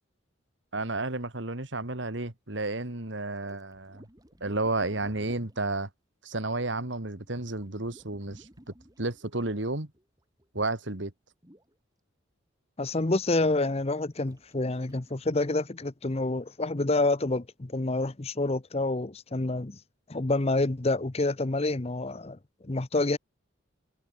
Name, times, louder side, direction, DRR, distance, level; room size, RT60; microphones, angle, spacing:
voice 1, 0.7-4.1 4.4-5.9 6.2-8.5 9.0-9.9 10.5-11.1, right 2 dB, 65° right, 2.3 m, -32 dB
sound 1, 3.4-5.7 6.9-10.5 10.9-11.0 11.4-11.8 13.4-13.7 14.3-15.3, equal, 20° right, 3.6 m, -55 dB
voice 2, 12.8-19.8 20.1-23.2, left 2 dB, 30° left, 0.8 m, -28 dB
head